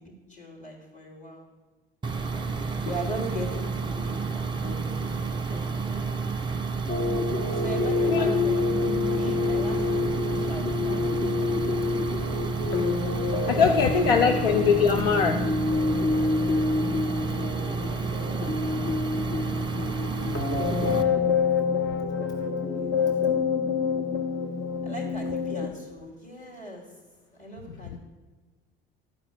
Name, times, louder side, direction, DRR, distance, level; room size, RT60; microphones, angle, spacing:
voice 1, 0.0-1.5 2.9-6.2 7.5-11.4 13.4-14.7 17.6-19.5 22.7-23.5 24.8-26.9 27.4-28.0, equal, 25° left, -2 dB, 3.6 m, -41 dB
sound 1, 2.0-21.0, right 4 dB, 15° right, 1.1 m, -30 dB
sound 2, 6.9-25.7, left 4 dB, 40° left, 1.5 m, -27 dB
voice 2, 13.5-15.4 20.4-20.5 27.9-28.0, left 6 dB, 80° left, 5 dB, 0.7 m, -22 dB
12.0 x 4.8 x 8.2 m, 1.3 s
hypercardioid pair, 60°, 29 cm